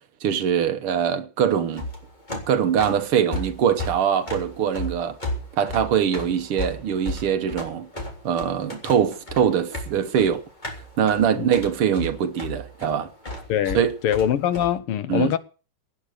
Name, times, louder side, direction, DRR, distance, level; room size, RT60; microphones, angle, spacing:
voice 1, 0.2-1.9 2.5-5.2 5.6-7.9 8.2-10.4 11.0-13.1 13.8-13.9 15.1-15.3, right 8 dB, 80° right, 2.1 m, -22 dB
sound 1, 1.6-14.7, left 1 dB, 20° left, 3.6 m, -34 dB
voice 2, 13.5-15.4, left 10 dB, 90° left, 1.9 m, -23 dB
17.0 x 9.7 x 6.6 m
omnidirectional pair, 2.4 m